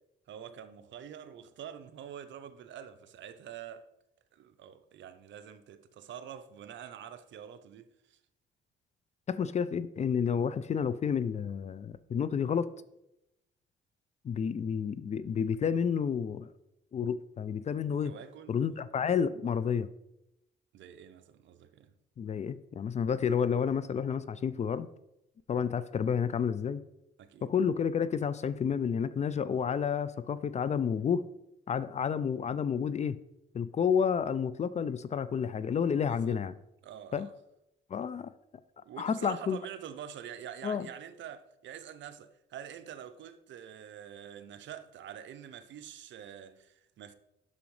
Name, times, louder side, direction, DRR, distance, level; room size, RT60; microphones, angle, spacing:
voice 1, 0.3-3.9 4.3-8.2 18.0-18.5 20.7-21.9 27.2-27.5 35.9-36.4 36.8-37.3 38.8-47.1, right 9 dB, 70° right, 0.6 m, -46 dB
voice 2, 9.3-12.7 14.2-16.5 16.9-18.1 18.5-19.9 22.2-24.9 25.5-26.8 27.4-31.2 31.7-33.2 33.5-36.5 37.1-37.3 37.9-38.3 39.0-39.6 40.6-40.9, left 7 dB, 35° left, 0.4 m, -30 dB
6.9 x 6.1 x 3.2 m
cardioid pair, 90°, 20 cm